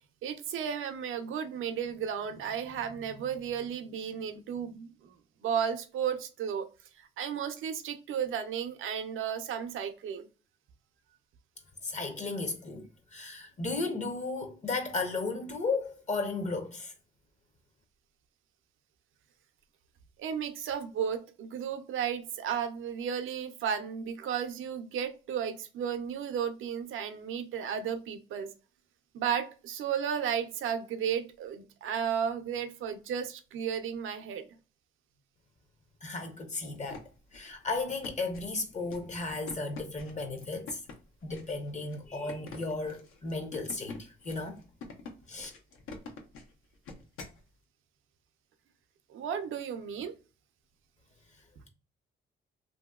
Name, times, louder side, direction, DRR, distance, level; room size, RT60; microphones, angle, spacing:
voice 1, 0.2-5.2 5.4-6.7 7.0-10.3 20.2-28.5 29.1-34.5 49.1-50.1, right 8 dB, 75° right, 0.5 m, -34 dB
voice 2, 11.8-16.9 36.0-37.0 37.3-40.8 41.2-44.6 45.3-45.5, left 3 dB, 35° left, 0.6 m, -35 dB
sound 1, 36.7-47.4, left 3 dB, 85° left, 0.8 m, -47 dB
2.8 x 2.6 x 2.2 m
cardioid pair, 110°, 21 cm